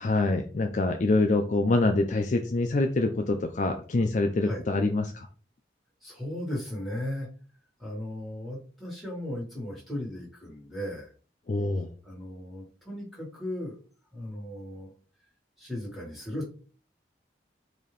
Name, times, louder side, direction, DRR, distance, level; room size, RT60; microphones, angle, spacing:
voice 1, 0.0-5.3 11.5-11.9, left 2 dB, 45° left, 5 dB, 0.4 m, -25 dB
voice 2, 6.0-7.3 7.8-11.1 12.0-13.8 14.1-14.9 15.6-16.5, left 1 dB, ahead, -5 dB, 1.7 m, -36 dB
4.0 x 2.7 x 3.2 m, 0.38 s
head